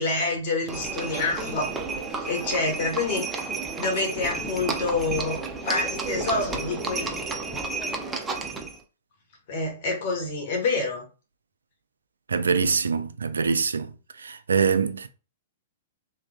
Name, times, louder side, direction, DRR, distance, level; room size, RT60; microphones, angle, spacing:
voice 1, 0.0-1.7 2.1-3.3 3.8-5.4 5.6-7.1 9.5-11.0, left 3 dB, 55° left, 1.5 m, -27 dB
Livestock farm animals working animals, 0.7-8.8, right 3 dB, 15° right, 0.6 m, -31 dB
voice 2, 12.3-13.9 14.2-15.1, right 5 dB, 80° right, 0.4 m, -24 dB
3.4 x 3.2 x 2.4 m
hypercardioid pair, 115°, 0 cm